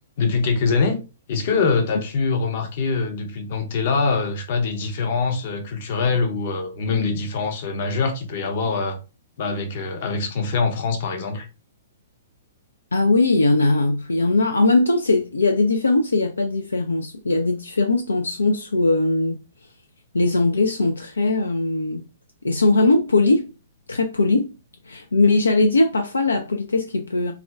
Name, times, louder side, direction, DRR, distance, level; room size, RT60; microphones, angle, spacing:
voice 1, 0.2-1.0 1.3-9.0 9.4-11.5, left 4 dB, 50° left, 0.7 m, -23 dB
voice 2, 12.9-19.4 20.1-22.0 22.4-23.5 23.9-24.5 24.9-27.3, left 2 dB, 80° left, 0.3 m, -20 dB
2.3 x 2.1 x 3.4 m
figure-of-eight pair, 115°, 0 cm